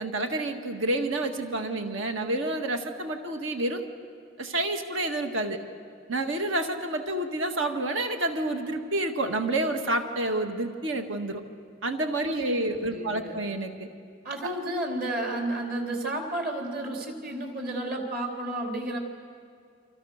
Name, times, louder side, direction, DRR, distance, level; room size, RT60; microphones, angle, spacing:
voice 1, 0.0-3.9 4.4-5.6 6.1-11.4 11.8-13.9, right 1 dB, 75° right, 5 dB, 1.9 m, -29 dB
voice 2, 12.2-13.4 14.2-19.0, right 1 dB, 50° right, 2 dB, 4.0 m, -32 dB
29.0 x 26.0 x 6.6 m, 2.4 s
head